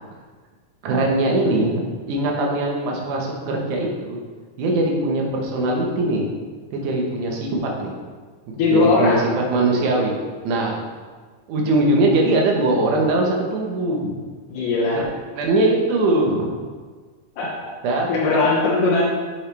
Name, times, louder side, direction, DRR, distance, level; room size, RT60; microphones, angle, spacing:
voice 1, 0.8-4.2 4.6-6.3 6.7-7.9 8.5-9.2 9.5-10.1 10.4-10.8 11.5-14.1 14.9-15.0 15.4-16.5 17.8-18.4, right 2 dB, 70° right, -1 dB, 2.6 m, -21 dB
voice 2, 8.6-9.3 14.5-15.1 17.4-17.7 18.1-19.0, left 3 dB, 85° left, -4 dB, 2.9 m, -19 dB
10.5 x 5.7 x 3.4 m, 1.5 s
omnidirectional pair, 3.7 m